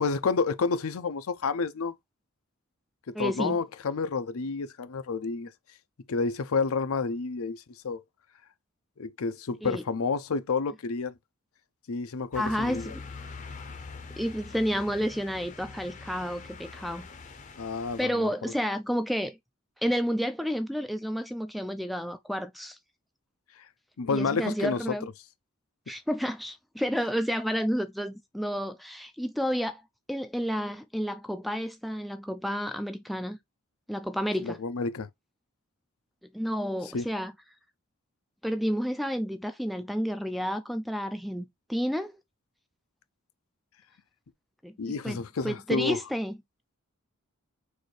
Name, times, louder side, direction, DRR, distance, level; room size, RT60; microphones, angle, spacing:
voice 1, 0.0-1.9 3.1-5.5 6.1-8.0 9.0-11.1 11.9-12.9 17.6-18.3 24.0-24.8 34.4-35.1 36.9-37.1 44.8-46.0, left 4 dB, 80° left, 0.5 m, -30 dB
voice 2, 3.1-3.6 9.6-9.8 12.3-13.0 14.2-17.1 18.0-19.4 19.8-22.8 24.1-25.1 25.9-29.8 30.1-33.4 33.9-34.6 36.2-37.3 38.4-42.2 44.6-46.4, equal, ahead, 0.3 m, -30 dB
sound 1, 12.3-18.1, left 4 dB, 35° left, 0.6 m, -44 dB
6.3 x 2.7 x 3.2 m
head